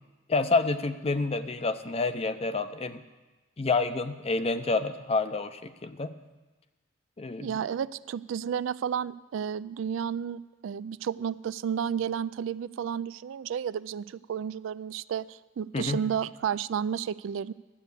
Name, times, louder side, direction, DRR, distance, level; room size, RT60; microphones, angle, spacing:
voice 1, 0.3-3.0 3.6-6.1 7.2-7.5 15.7-16.0, left 3 dB, 30° left, 11 dB, 0.5 m, -28 dB
voice 2, 7.4-17.5, right 8 dB, 70° right, 17 dB, 0.3 m, -32 dB
12.5 x 8.2 x 6.8 m, 1.2 s
head